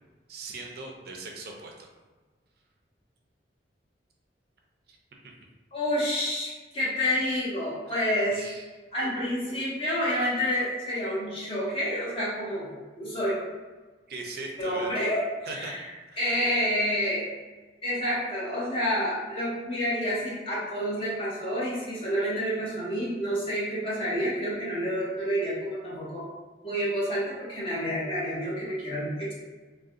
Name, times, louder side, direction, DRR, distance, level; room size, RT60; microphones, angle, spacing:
voice 1, 0.3-1.9 4.9-5.0 7.9-8.0 8.3-8.7 14.1-15.0 15.5-15.7 16.1-16.3, right 3 dB, 55° right, 0 dB, 0.4 m, -39 dB
voice 2, 5.7-8.4 8.9-12.7 13.0-13.4 14.6-15.2 15.5-15.8 16.2-17.3 17.8-26.2 26.6-29.3, equal, 30° left, -7 dB, 1.0 m, -29 dB
2.4 x 2.1 x 3.7 m, 1.3 s
head